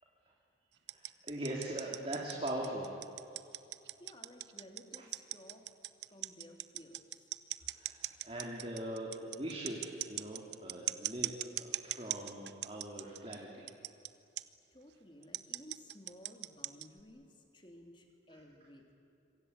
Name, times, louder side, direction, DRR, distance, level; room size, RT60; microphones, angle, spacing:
voice 1, 0.9-3.3 7.7-13.7 18.3-18.4, right 1 dB, 30° right, -2 dB, 3.4 m, -41 dB
sound 1, 0.9-13.4 13.7-14.1 14.4-14.5 15.2-17.0, right 14 dB, 70° right, 0.8 m, -39 dB
voice 2, 4.0-5.7 6.0-7.3 14.7-18.9, left 1 dB, 25° left, 3 dB, 3.2 m, -56 dB
26.5 x 25.0 x 8.4 m, 2.8 s
head